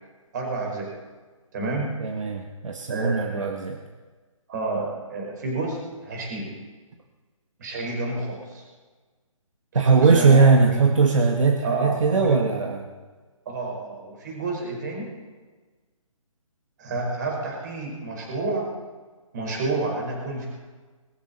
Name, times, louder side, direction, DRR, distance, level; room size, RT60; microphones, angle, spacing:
voice 1, 0.3-0.9 1.5-2.0 2.9-3.5 4.5-6.6 7.6-8.6 9.8-10.8 11.6-12.5 13.5-15.1 16.8-18.7 19.3-20.5, right 2 dB, 35° right, -1 dB, 5.4 m, -29 dB
voice 2, 2.0-3.8 9.7-12.8, right 4 dB, 65° right, 3 dB, 1.7 m, -20 dB
21.5 x 14.0 x 4.5 m, 1.4 s
hypercardioid pair, 165°, 18 cm